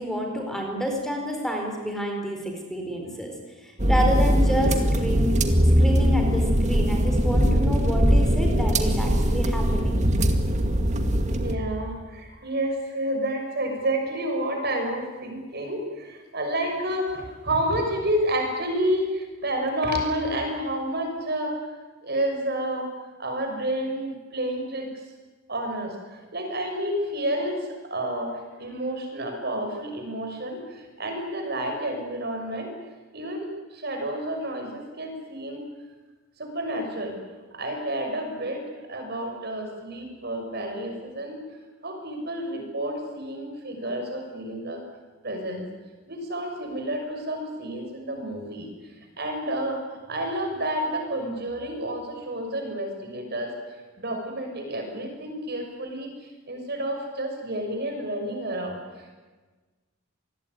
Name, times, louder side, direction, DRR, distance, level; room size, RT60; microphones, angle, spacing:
voice 1, 0.0-3.3 3.6-5.3 5.6-10.0, equal, ahead, 2 dB, 4.6 m, -29 dB
sound 1, 3.8-11.6, equal, 35° right, 2.2 m, -21 dB
voice 2, 11.4-21.6 22.0-22.9 23.2-24.9 25.5-28.3 28.6-32.7 33.1-35.6 36.4-37.2 37.5-38.6 38.9-41.4 41.8-44.8 45.2-45.6 46.1-48.7 49.2-49.8 50.1-53.5 54.0-56.1 56.5-58.8, right 1 dB, 50° right, 4 dB, 6.5 m, -30 dB
26.5 x 20.5 x 9.6 m, 1.3 s
head